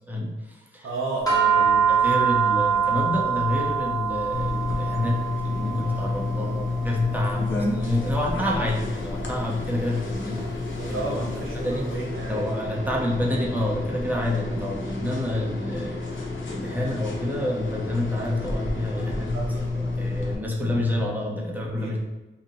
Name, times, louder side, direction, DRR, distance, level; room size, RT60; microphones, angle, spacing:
voice 1, 0.1-0.9 1.5-11.2 11.6-11.8 12.2-16.1 16.5-19.4 20.0-22.0, left 1 dB, 10° right, -3 dB, 0.7 m, -28 dB
voice 2, 0.8-1.9 10.7-12.7 19.3-20.2 21.7-21.9, right 2 dB, 75° right, -2 dB, 0.8 m, -33 dB
sound 1, 1.3-11.7, right 7 dB, 15° left, 1.1 m, -26 dB
sound 2, 4.3-20.3, left 2 dB, 65° left, 0.7 m, -30 dB
2.8 x 2.8 x 4.0 m, 1.1 s
wide cardioid pair, 90°, 21 cm